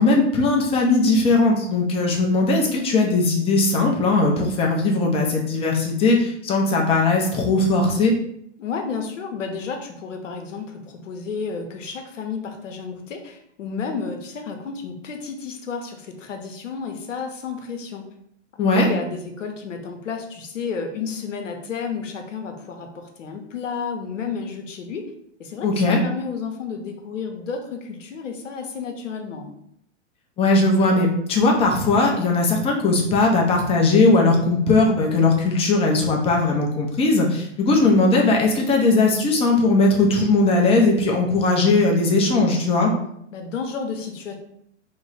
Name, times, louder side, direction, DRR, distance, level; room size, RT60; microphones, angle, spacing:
voice 1, 0.0-8.1 18.6-18.9 25.6-26.0 30.4-42.9, left 3 dB, 15° left, 0 dB, 0.5 m, -19 dB
voice 2, 8.6-18.0 18.7-25.0 25.4-29.5 43.3-44.3, left 5 dB, 90° left, 4 dB, 0.7 m, -31 dB
3.0 x 2.0 x 3.8 m, 0.72 s
hypercardioid pair, 115°, 36 cm